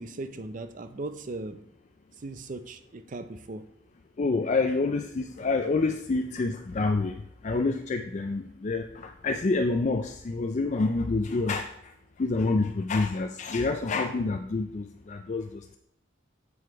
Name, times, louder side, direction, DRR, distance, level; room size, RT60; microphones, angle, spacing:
voice 1, 0.0-1.6 2.2-3.6, right 2 dB, 40° right, 11 dB, 0.5 m, -38 dB
voice 2, 4.2-11.7 12.2-15.8, left 3 dB, 40° left, 6 dB, 0.4 m, -28 dB
7.9 x 4.8 x 4.6 m, 0.75 s
head